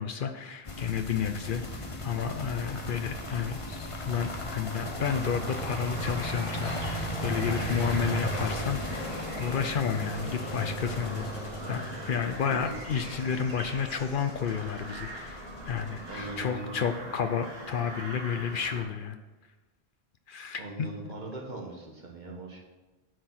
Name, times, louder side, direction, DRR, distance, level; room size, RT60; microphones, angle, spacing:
voice 1, 0.0-19.2 20.3-21.1, left 7 dB, 60° left, 8 dB, 0.7 m, -31 dB
sound 1, 0.7-16.5, equal, 35° left, 0.9 m, -36 dB
sound 2, 5.1-18.8, right 2 dB, 70° right, 1.7 m, -42 dB
voice 2, 16.1-16.9 20.6-22.6, right 2 dB, 45° right, -1 dB, 1.6 m, -40 dB
9.2 x 4.5 x 5.9 m, 1.2 s
omnidirectional pair, 1.0 m